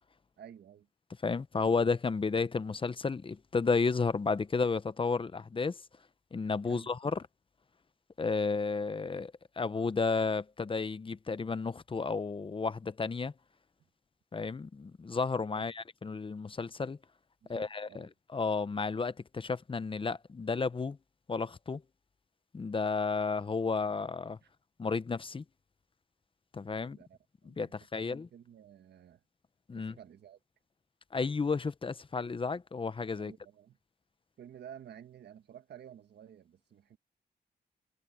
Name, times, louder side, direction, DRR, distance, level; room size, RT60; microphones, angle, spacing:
voice 1, 0.4-0.9 6.7-6.9 15.5-15.7 17.4-18.1 24.4-24.5 26.8-29.2 29.7-30.4 33.2-33.8 34.4-37.0, right 9 dB, 75° right, 1.3 m, -52 dB
voice 2, 1.2-5.8 6.3-7.2 8.2-13.3 14.3-17.0 17.5-18.1 18.3-21.0 21.3-21.8 22.5-24.4 24.8-25.4 26.5-27.0 27.4-28.3 29.7-30.0 31.1-33.3, left 4 dB, 30° left, 0.8 m, -32 dB
cardioid pair, 90°, 18 cm